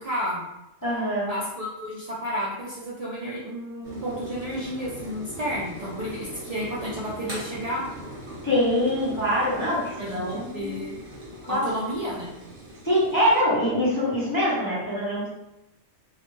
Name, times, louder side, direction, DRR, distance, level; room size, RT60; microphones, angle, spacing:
voice 1, 0.0-0.4 1.2-7.8 10.0-11.0 11.5-12.3, equal, 85° right, -6 dB, 0.3 m, -31 dB
voice 2, 0.8-1.3 8.4-10.9 11.5-11.6 12.8-15.3, equal, 25° left, -9 dB, 0.5 m, -24 dB
sound 1, 3.8-13.4, equal, 45° right, 0.9 m, -40 dB
2.3 x 2.1 x 3.0 m, 0.90 s
omnidirectional pair, 1.3 m